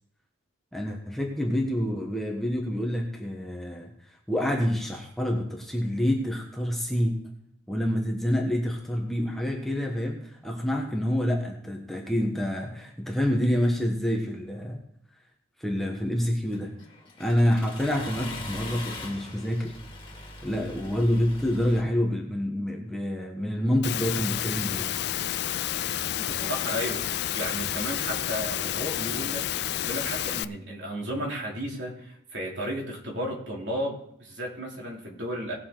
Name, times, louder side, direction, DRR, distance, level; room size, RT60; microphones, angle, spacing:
voice 1, 0.7-7.2 7.7-14.8 15.6-16.7 17.2-19.7 20.4-24.9, equal, ahead, 0 dB, 1.3 m, -27 dB
Accelerating revving vroom, 16.5-21.8, left 2 dB, 25° left, 2.2 m, -41 dB
Engine / Mechanisms, 23.8-30.4, left 12 dB, 55° left, 0.3 m, -30 dB
voice 2, 26.2-35.6, equal, 60° right, -2 dB, 3.0 m, -34 dB
19.0 x 6.9 x 3.9 m, 0.73 s
head